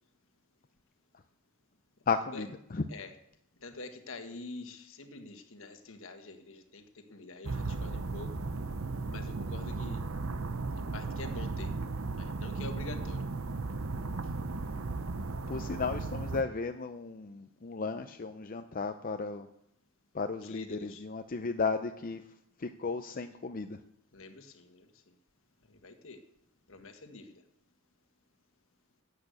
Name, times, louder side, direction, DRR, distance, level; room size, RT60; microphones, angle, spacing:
voice 1, 2.1-2.8 15.5-19.5 20.1-22.2 22.6-23.8, left 4 dB, 40° left, 7 dB, 0.6 m, -34 dB
voice 2, 2.9-3.2 3.6-8.4 9.1-10.0 10.7-11.8 12.2-13.3 20.4-21.1 24.1-25.1 25.7-26.2 26.7-27.4, left 3 dB, 65° left, 7 dB, 1.6 m, -46 dB
sound 1, 7.4-16.4, right 3 dB, 70° right, 0.8 m, -36 dB
13.0 x 8.5 x 8.3 m, 0.80 s
head